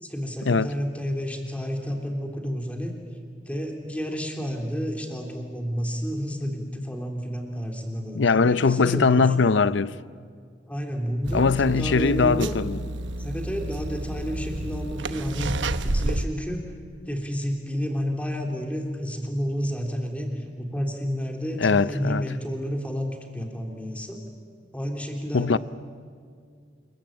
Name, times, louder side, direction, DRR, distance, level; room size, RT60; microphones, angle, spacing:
voice 1, 0.0-2.9 3.5-9.4 10.7-12.7 13.2-16.6 17.1-24.2 24.7-25.6, equal, 10° left, 3.3 m, -30 dB
voice 2, 8.1-9.9 11.3-12.8 21.6-22.3 25.3-25.6, left 4 dB, 85° left, 0.6 m, -21 dB
sound 1, 11.2-16.3, right 2 dB, 90° right, 1.0 m, -30 dB
27.0 x 23.0 x 8.9 m
head